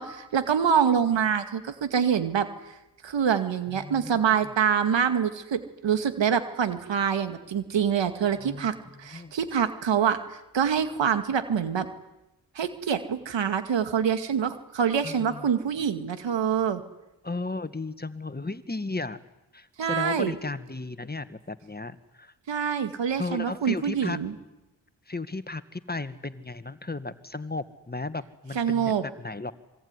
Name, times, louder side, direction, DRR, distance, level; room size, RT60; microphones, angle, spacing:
voice 1, 0.0-2.5 3.0-11.9 12.6-16.8 19.8-20.3 22.5-24.3 28.5-29.0, right 7 dB, 80° right, 9 dB, 2.3 m, -25 dB
voice 2, 3.7-4.2 8.4-8.7 9.1-9.3 15.0-15.5 17.2-19.2 19.5-22.3 23.1-24.2 25.1-29.5, left 3 dB, 20° left, 12 dB, 1.9 m, -35 dB
26.0 x 22.5 x 9.9 m, 0.98 s
cardioid pair, 45°, 43 cm